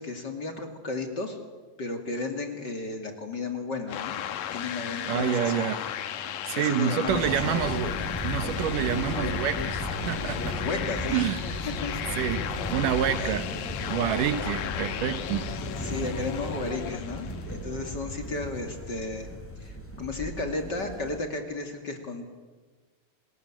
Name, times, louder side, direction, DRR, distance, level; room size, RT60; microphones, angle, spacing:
voice 1, 0.0-1.4 1.8-4.2 4.5-5.7 6.2-7.6 10.6-11.3 11.6-11.9 13.2-13.4 14.4-14.5 15.8-19.3 19.6-22.2, left 3 dB, 35° left, 5 dB, 2.7 m, -34 dB
sound 1, 3.9-17.6, left 10 dB, 85° left, 3.0 m, -35 dB
voice 2, 5.1-5.8 6.5-7.9 8.2-10.6 11.1-11.4 12.2-13.5 13.9-15.5, right 10 dB, 80° right, 12 dB, 2.7 m, -28 dB
sound 2, 7.1-21.2, equal, 5° left, 4.0 m, -36 dB
sound 3, 7.5-17.0, left 10 dB, 70° left, 2.1 m, -40 dB
30.0 x 20.5 x 8.9 m, 1.4 s
omnidirectional pair, 3.7 m